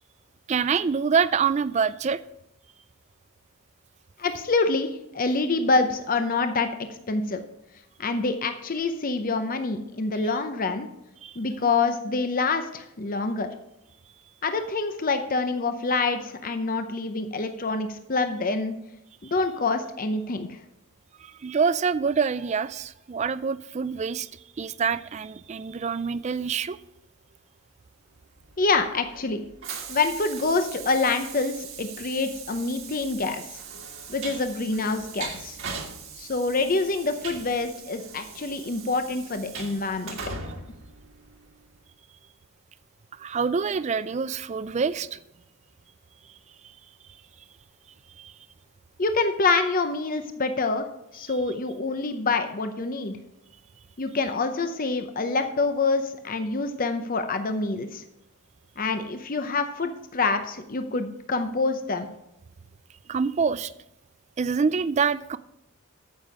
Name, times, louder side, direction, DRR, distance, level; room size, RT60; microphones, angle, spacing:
voice 1, 0.5-2.2 11.2-11.4 21.2-24.3 24.6-26.8 43.2-45.2 48.2-48.3 63.1-63.7 64.4-65.4, right 6 dB, 30° right, 16 dB, 0.3 m, -26 dB
voice 2, 4.2-4.9 5.1-6.7 7.1-7.4 8.0-10.9 11.4-13.5 14.4-18.7 19.3-20.5 28.6-29.4 29.9-33.4 34.1-35.6 36.2-40.2 49.0-50.9 51.1-53.2 54.0-58.0 58.8-62.1, left 3 dB, 40° left, 8 dB, 0.7 m, -26 dB
Train, 28.5-41.7, right 5 dB, 60° right, 1.7 m, -40 dB
9.5 x 7.5 x 4.9 m, 0.85 s
head